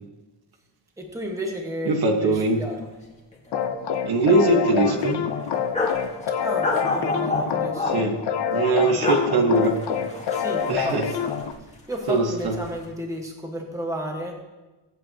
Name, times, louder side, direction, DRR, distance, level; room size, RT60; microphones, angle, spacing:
voice 1, 1.0-2.3 2.6-2.7 6.4-8.0 10.3-11.4 11.9-14.3, equal, 5° right, 1 dB, 1.5 m, -32 dB
voice 2, 1.8-2.6 4.0-5.3 7.8-8.2 8.5-9.8 10.6-11.1 12.1-12.5, right 2 dB, 60° right, 3 dB, 1.5 m, -21 dB
sound 1, 2.3-2.5 2.7-2.9 3.3-4.0 4.3-4.4 4.9-6.0 6.6-7.9 8.8-9.2 9.6-11.6 11.9-12.7, left 2 dB, 15° left, 1.8 m, -29 dB
sound 2, 3.5-11.5, left 7 dB, 70° left, 1.0 m, -27 dB
23.0 x 7.9 x 3.0 m, 1.1 s
cardioid pair, 155°, 43 cm